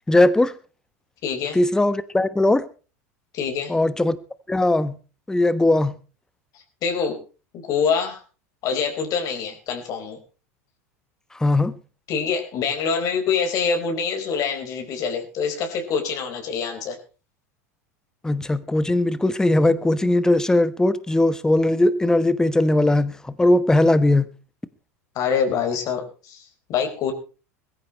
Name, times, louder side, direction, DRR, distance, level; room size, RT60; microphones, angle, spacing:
voice 1, 0.1-0.5 1.5-2.6 3.7-4.2 4.5-5.0 5.3-5.9 11.4-11.7 18.2-24.3, left 2 dB, 5° left, 1.2 m, -19 dB
voice 2, 1.2-1.6 3.3-3.7 6.8-7.2 7.7-8.2 8.6-10.2 12.1-17.0 25.1-27.1, left 6 dB, 45° left, 4.6 m, -25 dB
22.0 x 14.5 x 3.2 m
figure-of-eight pair, 80°, 8 cm